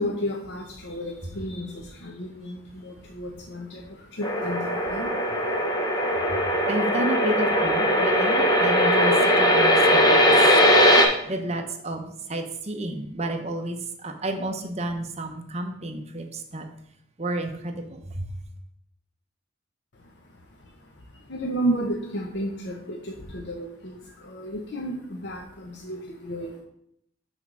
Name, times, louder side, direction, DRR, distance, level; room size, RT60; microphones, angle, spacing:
voice 1, 0.0-5.6 19.9-26.6, equal, 60° left, 0.8 m, -33 dB
sound 1, 4.2-11.0, equal, 20° left, 0.9 m, -20 dB
voice 2, 6.7-9.1 9.4-10.3 11.2-13.8 14.0-16.6 17.2-18.3, right 1 dB, 35° right, 0.8 m, -31 dB
6.3 x 3.6 x 6.0 m
head